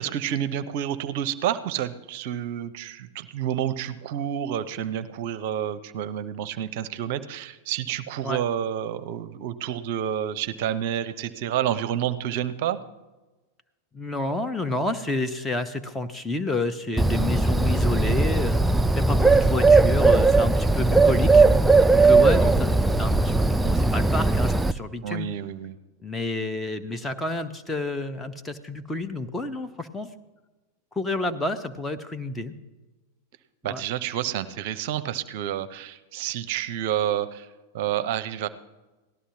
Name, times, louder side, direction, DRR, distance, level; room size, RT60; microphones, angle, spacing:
voice 1, 0.0-12.8 25.0-25.8 33.6-37.5 37.7-38.5, right 10 dB, 50° right, 12 dB, 0.6 m, -29 dB
voice 2, 13.9-18.6 18.9-21.5 21.9-25.3 26.0-30.1 30.9-32.5 33.7-33.8, left 2 dB, 10° left, 8 dB, 0.8 m, -29 dB
Bird, 17.0-24.7, right 3 dB, 5° right, 0.3 m, -18 dB
18.0 x 12.5 x 2.8 m, 1.2 s
figure-of-eight pair, 90°, 0 cm